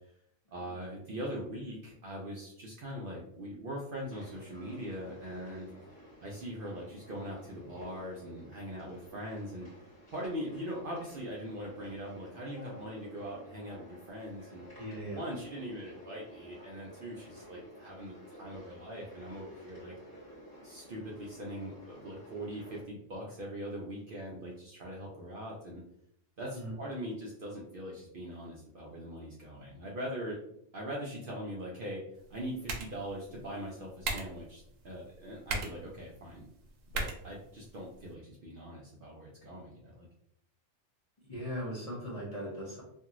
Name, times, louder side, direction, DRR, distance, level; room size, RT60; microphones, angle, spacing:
voice 1, 0.5-5.7 6.2-9.7 10.1-14.7 15.1-19.9 20.6-25.8 26.4-30.4 30.7-32.0 32.3-36.4 36.9-40.1, equal, 60° right, -3 dB, 0.6 m, -41 dB
sound 1, 4.1-22.8, equal, 20° left, 1.4 m, -52 dB
voice 2, 14.8-15.2 26.5-26.8 41.3-42.8, equal, 35° left, -5 dB, 0.7 m, -38 dB
sound 2, 32.1-38.1, right 3 dB, 80° right, 1.0 m, -41 dB
2.9 x 2.6 x 2.4 m, 0.74 s
omnidirectional pair, 1.3 m